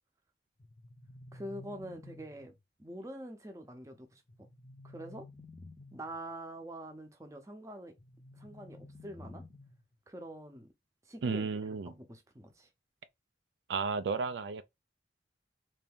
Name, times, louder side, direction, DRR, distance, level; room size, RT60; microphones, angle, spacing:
sound 1, 0.6-2.6 4.3-6.2 8.0-10.0, left 2 dB, 25° left, 0.6 m, -52 dB
voice 1, 1.3-2.5 2.8-4.2 4.8-5.3 5.9-7.9 8.3-9.4 10.1-10.7 11.1-11.5 12.0-12.7, right 1 dB, 15° right, 0.6 m, -45 dB
voice 2, 11.2-11.9 13.7-14.6, right 4 dB, 75° right, 0.4 m, -33 dB
3.3 x 2.6 x 3.5 m
head